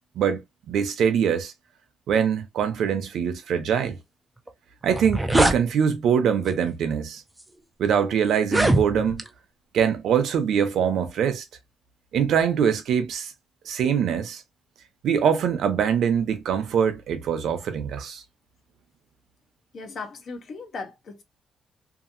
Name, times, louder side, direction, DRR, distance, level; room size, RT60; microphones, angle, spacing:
voice 1, 0.2-1.5 2.1-4.0 4.8-7.2 7.8-9.2 9.7-11.4 12.1-13.3 13.7-14.4 15.0-18.2, right 7 dB, 65° right, 0.7 m, -23 dB
sound 1, 4.5-4.6 4.9-5.6 6.5-6.7 7.4-7.5 8.4-9.3, right 1 dB, 5° right, 0.3 m, -22 dB
voice 2, 19.7-21.2, left 4 dB, 45° left, 0.6 m, -37 dB
2.9 x 2.5 x 2.5 m
cardioid pair, 180°, 0 cm